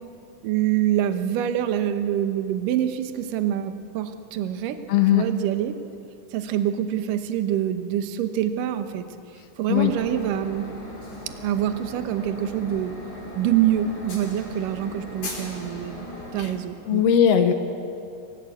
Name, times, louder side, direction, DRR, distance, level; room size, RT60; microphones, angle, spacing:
voice 1, 0.4-4.8 5.1-5.8 6.3-9.1 9.6-10.7 11.3-12.9 13.4-16.1 16.3-17.0, right 11 dB, 70° right, 8 dB, 2.4 m, -25 dB
voice 2, 4.9-5.3 9.7-9.9 16.4-16.5 16.9-17.5, left 9 dB, 90° left, 6 dB, 1.4 m, -18 dB
sound 1, 9.7-16.5, left 1 dB, 40° left, 5.9 m, -38 dB
26.0 x 16.0 x 8.3 m, 2.5 s
omnidirectional pair, 4.4 m